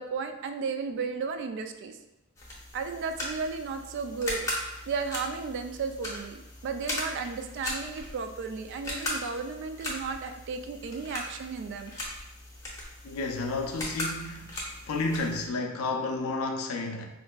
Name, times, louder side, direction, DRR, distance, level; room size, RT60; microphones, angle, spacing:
voice 1, 0.0-2.0 2.7-4.5 4.9-11.9, right 5 dB, 55° right, 7 dB, 0.3 m, -34 dB
sound 1, 2.4-15.4, left 1 dB, 15° left, 0.6 m, -38 dB
voice 2, 13.0-14.5 14.9-17.0, left 3 dB, 85° left, 2 dB, 0.4 m, -31 dB
4.4 x 2.4 x 2.2 m, 0.95 s
head